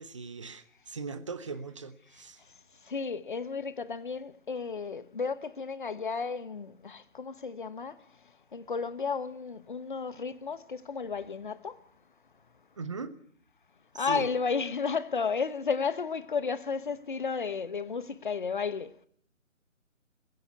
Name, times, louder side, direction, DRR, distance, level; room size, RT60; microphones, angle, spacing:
voice 1, 0.0-2.4 12.8-13.1 13.9-14.3, right 4 dB, 25° right, 1.0 m, -39 dB
voice 2, 2.8-8.0 8.5-11.8 13.9-19.0, left 5 dB, 40° left, 1.0 m, -33 dB
22.0 x 15.5 x 9.6 m
figure-of-eight pair, 150°, 40 cm